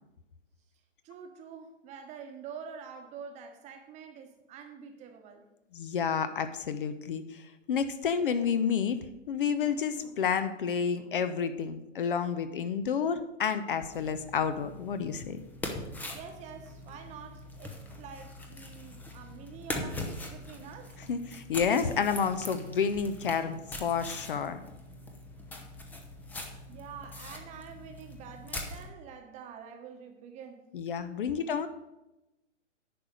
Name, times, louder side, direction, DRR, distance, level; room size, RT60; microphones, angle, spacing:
voice 1, 1.0-5.4 16.1-20.9 26.7-30.7 30.9-31.2, right 7 dB, 20° right, 6 dB, 1.2 m, -47 dB
voice 2, 5.7-9.0 9.3-15.4 21.1-24.6 30.7-31.7, left 6 dB, 45° left, 11 dB, 0.8 m, -30 dB
sound 1, 13.9-28.9, left 2 dB, 5° left, 0.7 m, -42 dB
10.5 x 4.9 x 8.1 m, 0.96 s
figure-of-eight pair, 125°, 37 cm